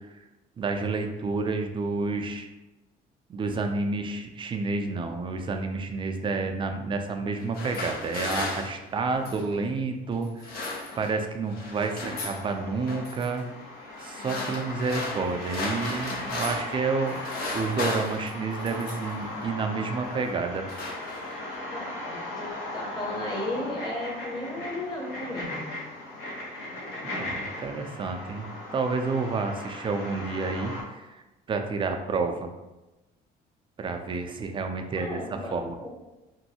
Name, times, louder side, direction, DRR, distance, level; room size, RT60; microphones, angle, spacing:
voice 1, 0.6-2.5 3.3-10.4 10.9-13.4 14.0-17.2 17.5-20.6 27.0-31.2 31.5-32.5 33.8-35.8, right 4 dB, 30° right, 5 dB, 0.3 m, -30 dB
sound 1, 7.3-9.5 10.2-11.3 11.5-12.4 12.9-13.3 14.0-16.8 17.1-19.2 19.9-20.2 20.5-21.5, left 2 dB, 60° left, 0.6 m, -35 dB
sound 2, 12.1-30.8, left 1 dB, 85° left, 0.9 m, -38 dB
voice 2, 21.7-25.7 35.0-35.9, left 1 dB, 25° left, -3 dB, 1.0 m, -35 dB
3.0 x 2.6 x 2.8 m, 1.1 s
cardioid pair, 110°, 17 cm